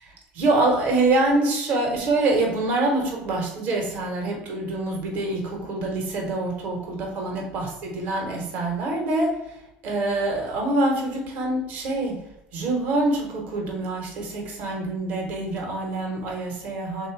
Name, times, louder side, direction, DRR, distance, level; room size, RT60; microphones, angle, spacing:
voice 1, 0.3-9.5 9.8-12.2 12.5-17.1, right 2 dB, 60° right, 0 dB, 1.3 m, -25 dB
3.3 x 2.7 x 4.6 m, 0.89 s
supercardioid pair, 115°, 3 cm